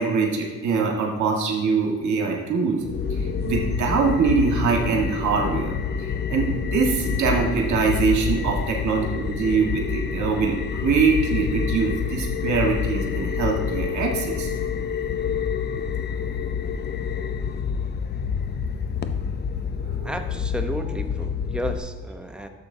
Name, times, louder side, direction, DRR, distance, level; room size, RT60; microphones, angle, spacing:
voice 1, 0.0-2.8 3.1-5.7 6.0-14.5 19.8-20.1 22.4-22.5, right 5 dB, 70° right, 0 dB, 1.5 m, -23 dB
sound 1, 2.8-21.8, left 6 dB, 35° left, 0.5 m, -27 dB
voice 2, 20.0-22.5, right 1 dB, 5° right, 5 dB, 0.8 m, -32 dB
12.0 x 7.3 x 2.7 m, 1.5 s
cardioid pair, 90°, 30 cm